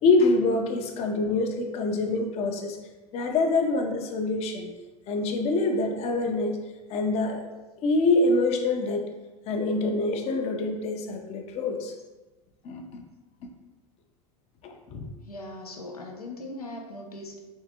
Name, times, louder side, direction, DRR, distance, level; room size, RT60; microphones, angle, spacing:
voice 1, 0.0-2.8 3.1-4.7 5.1-6.6 6.9-7.4 7.8-9.0 9.5-11.9 12.6-13.0 14.6-15.0, left 3 dB, 35° left, 3 dB, 0.5 m, -25 dB
voice 2, 15.2-17.4, left 1 dB, 90° left, 0 dB, 0.7 m, -39 dB
3.5 x 3.2 x 2.8 m, 1.2 s
figure-of-eight pair, 85°, 19 cm